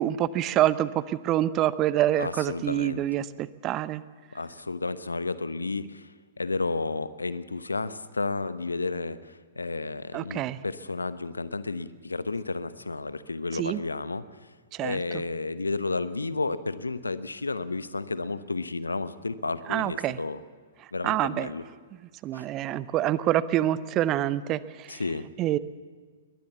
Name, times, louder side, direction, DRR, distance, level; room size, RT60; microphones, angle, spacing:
voice 1, 0.0-4.0 10.1-10.6 13.5-13.8 14.7-15.0 19.7-20.2 21.0-21.5 22.2-25.0 25.4-25.6, right 13 dB, 30° right, 17 dB, 0.7 m, -26 dB
voice 2, 2.2-3.1 4.3-14.2 14.8-20.4 20.9-21.6 22.3-22.5 24.9-25.3, left 3 dB, 80° left, 14 dB, 0.9 m, -32 dB
22.0 x 19.5 x 7.2 m, 1.5 s
figure-of-eight pair, 110°, 0 cm